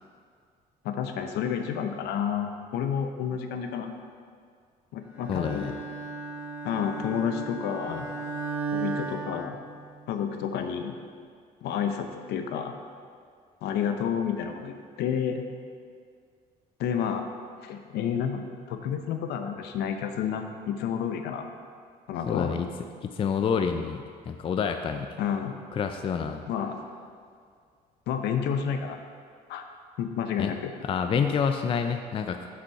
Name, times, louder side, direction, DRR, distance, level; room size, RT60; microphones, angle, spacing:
voice 1, 0.8-3.9 4.9-5.8 6.6-8.1 8.7-9.6 10.1-10.9 11.6-12.7 13.6-15.4 16.8-17.3 17.6-21.5 22.1-22.5 25.2-25.6 26.5-26.8 28.1-29.0 29.5-29.6 30.0-30.7, left 8 dB, 80° left, 6 dB, 0.7 m, -30 dB
Bowed string instrument, 5.2-10.2, right 4 dB, 10° right, 1.9 m, -35 dB
voice 2, 5.3-5.7 22.3-22.7 23.0-25.2 25.7-26.4 30.4-30.5 30.8-32.5, left 6 dB, 30° left, 6 dB, 0.4 m, -28 dB
6.1 x 5.9 x 4.7 m, 2.1 s
cardioid pair, 110°, 17 cm